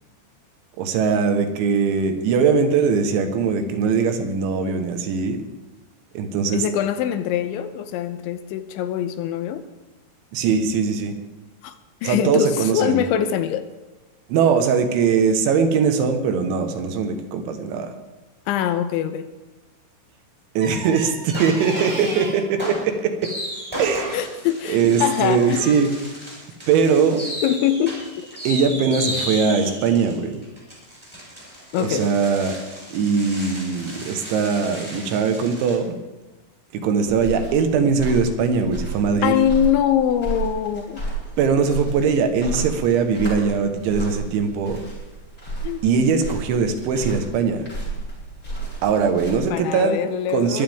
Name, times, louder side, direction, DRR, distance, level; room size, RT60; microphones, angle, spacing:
voice 1, 0.8-5.4 6.2-6.7 10.3-11.2 12.0-13.0 14.3-17.9 20.6-23.3 23.8-24.2 24.7-25.9 26.7-27.2 28.5-30.4 31.8-32.6 32.9-36.0 36.7-39.4 41.4-44.8 45.8-47.7 48.8-50.0 50.3-50.6, right 5 dB, 75° right, 6 dB, 3.5 m, -21 dB
voice 2, 6.5-9.6 11.6-11.8 12.0-13.6 18.5-19.3 24.1-25.7 27.4-28.3 31.7-32.1 39.2-41.0 45.6-45.8 49.5-50.6, left 9 dB, 80° left, 10 dB, 3.0 m, -23 dB
sound 1, 20.6-22.5 23.8-24.3 24.9-25.8, right 1 dB, 30° right, 2.4 m, -34 dB
sound 2, 21.3-22.2 22.6-35.7, equal, 5° right, 5.8 m, -34 dB
sound 3, 37.1-49.4, right 3 dB, 20° left, 7.1 m, -32 dB
22.5 x 14.5 x 3.6 m, 1.1 s
omnidirectional pair, 5.6 m